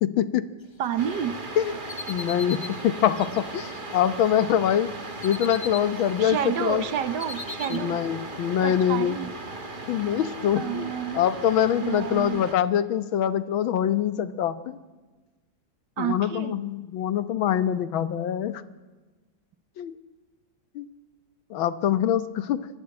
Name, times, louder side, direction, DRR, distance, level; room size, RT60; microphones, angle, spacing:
voice 1, 0.0-0.5 1.6-1.8 2.1-4.9 5.2-6.8 7.7-9.2 9.9-14.8 16.0-18.6 19.8-19.9 20.8-20.9 21.5-22.7, left 10 dB, 90° left, 14 dB, 1.8 m, -24 dB
voice 2, 0.8-1.4 6.2-8.0 8.6-9.3 10.6-11.3 11.8-12.4 16.0-16.5, right 9 dB, 65° right, 14 dB, 1.5 m, -29 dB
sound 1, 1.0-4.3 4.7-6.5 6.7-7.8, left 4 dB, 35° left, 0.4 m, -40 dB
sound 2, 1.0-12.5, right 2 dB, 25° right, 1.8 m, -38 dB
26.0 x 14.0 x 8.7 m, 1.3 s
omnidirectional pair, 2.1 m